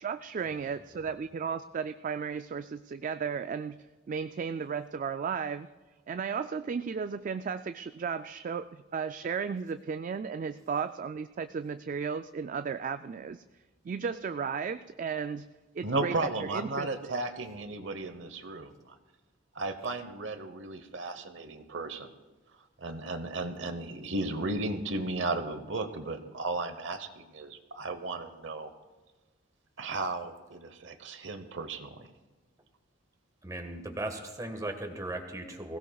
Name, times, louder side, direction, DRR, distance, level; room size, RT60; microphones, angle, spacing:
voice 1, 0.0-3.8 4.1-5.7 6.1-8.6 8.9-13.4 13.9-15.4 15.8-17.2, right 6 dB, 40° right, 10 dB, 0.3 m, -34 dB
voice 2, 15.8-19.0 19.5-22.1 22.8-28.7 29.8-32.1, right 2 dB, 70° right, 9 dB, 1.0 m, -35 dB
voice 3, 33.4-35.8, right 1 dB, 20° right, 4 dB, 1.5 m, -37 dB
21.0 x 16.5 x 2.3 m, 1.2 s
head